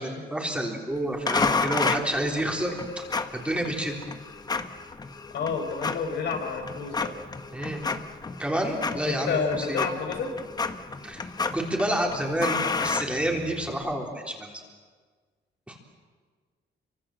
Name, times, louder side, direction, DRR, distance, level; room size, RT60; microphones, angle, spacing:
voice 1, 0.0-3.0 3.3-4.0 7.5-7.8 8.4-9.8 11.0-11.3 11.5-14.5 15.7-15.8, right 1 dB, 5° right, 0 dB, 3.7 m, -29 dB
sound 1, 1.3-13.8, left 4 dB, 20° left, 1.2 m, -31 dB
voice 2, 5.3-7.1 9.1-10.3, left 5 dB, 70° left, 4 dB, 5.0 m, -29 dB
29.5 x 24.5 x 7.8 m, 1.5 s
wide cardioid pair, 165°, 18 cm